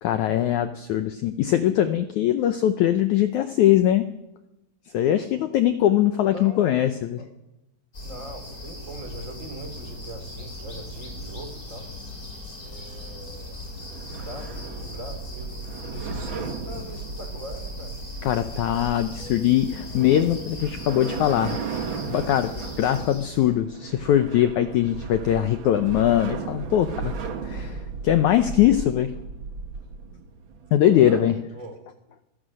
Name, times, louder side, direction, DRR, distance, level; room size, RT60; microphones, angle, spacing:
voice 1, 0.0-4.0 4.9-7.2 18.2-21.6 22.1-27.1 27.4-29.1 30.7-31.3, left 11 dB, 80° left, 9 dB, 1.7 m, -21 dB
voice 2, 6.1-6.8 7.2-7.3 8.0-11.9 12.6-13.6 14.0-18.0 30.9-31.8, right 1 dB, 20° right, 5 dB, 3.3 m, -40 dB
sound 1, 7.9-23.5, left 1 dB, 20° left, 4.5 m, -39 dB
sound 2, 12.5-31.2, right 5 dB, 60° right, 1.3 m, -36 dB
25.5 x 16.5 x 6.5 m, 0.93 s
omnidirectional pair, 4.5 m